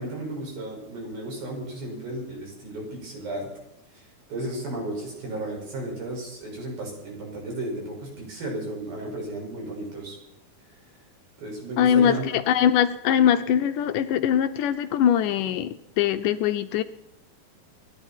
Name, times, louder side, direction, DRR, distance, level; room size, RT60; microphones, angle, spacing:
voice 1, 0.0-3.5 3.9-4.0 4.3-10.2 11.4-12.2, right 1 dB, 85° right, -1 dB, 7.8 m, -34 dB
voice 2, 11.8-16.8, left 9 dB, 75° left, 10 dB, 2.1 m, -22 dB
27.5 x 11.5 x 4.5 m, 0.85 s
omnidirectional pair, 4.1 m